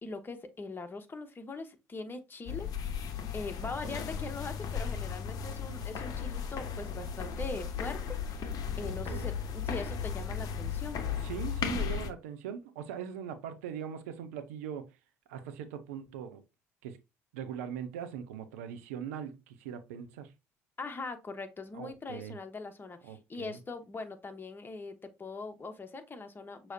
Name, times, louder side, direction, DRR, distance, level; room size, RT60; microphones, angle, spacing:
voice 1, 0.0-2.7 3.0-11.1 20.8-26.7, left 3 dB, 25° left, 1.1 m, -41 dB
sound 1, 2.5-12.1, left 7 dB, 50° left, 0.8 m, -36 dB
voice 2, 3.6-4.0 8.8-9.3 11.1-15.0 15.3-16.4 16.8-17.0 17.3-20.3 21.7-22.4 23.0-23.6, right 8 dB, 75° right, 0.7 m, -41 dB
6.2 x 3.0 x 2.7 m
hypercardioid pair, 55°, 8 cm